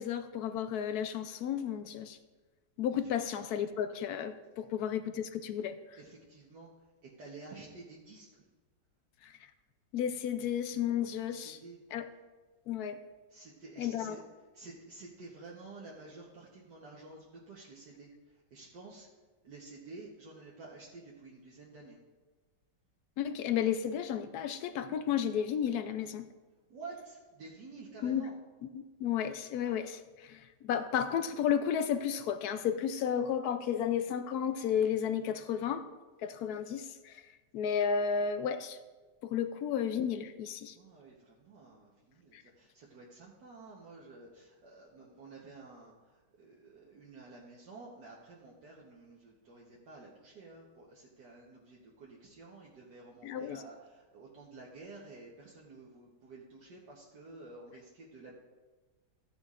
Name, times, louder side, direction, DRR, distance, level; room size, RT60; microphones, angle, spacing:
voice 1, 0.0-2.2 2.8-5.8 9.2-9.3 9.9-11.6 11.9-12.1 12.7-13.0 13.8-14.2 23.2-26.3 28.0-28.2 28.6-35.9 36.2-37.1 37.5-38.8 39.3-40.7 42.3-42.4 53.2-53.6, left 8 dB, 70° left, 10 dB, 1.0 m, -33 dB
voice 2, 5.9-6.7 7.0-8.4 11.3-11.8 13.3-14.2 14.5-19.1 19.4-22.0 26.7-28.4 39.6-39.7 40.7-58.3, right 3 dB, 70° right, -4 dB, 1.7 m, -51 dB
14.5 x 9.4 x 2.5 m, 1.3 s
omnidirectional pair, 1.9 m